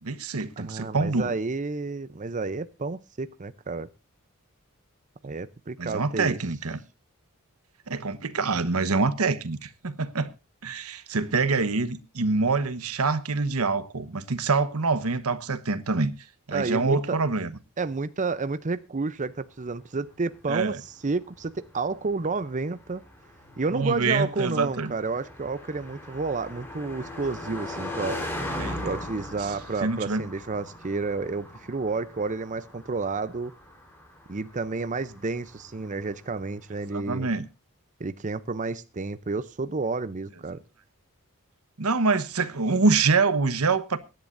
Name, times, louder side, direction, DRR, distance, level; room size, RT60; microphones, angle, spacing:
voice 1, 0.0-1.3 5.2-5.3 5.8-6.8 7.9-10.3 10.6-16.1 16.5-17.5 20.5-20.8 23.7-25.0 28.6-28.8 29.4-29.5 29.8-30.2 36.9-37.4 41.8-44.0, right 4 dB, 80° right, 1.2 m, -25 dB
voice 2, 0.6-3.9 5.2-6.4 16.5-17.2 17.8-20.8 21.0-23.0 23.6-28.2 28.8-33.5 34.3-37.3 38.0-40.6, right 3 dB, 35° right, 0.6 m, -30 dB
Car passing by, 20.1-36.5, left 1 dB, 10° left, 3.9 m, -40 dB
24.0 x 10.5 x 2.6 m
head